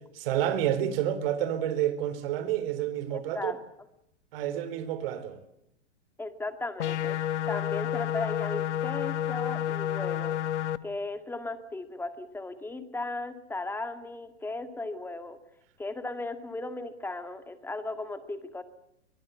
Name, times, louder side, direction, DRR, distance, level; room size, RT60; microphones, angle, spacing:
voice 1, 0.1-3.5 4.3-5.4, right 11 dB, 55° right, 4.0 m, -29 dB
voice 2, 3.1-3.6 6.2-7.2 7.5-10.4 10.8-15.4 15.8-18.6, left 2 dB, 5° left, 2.1 m, -36 dB
sound 1, 6.8-10.8, left 11 dB, 80° left, 1.2 m, -30 dB
22.5 x 22.5 x 8.1 m
hypercardioid pair, 130°, 34 cm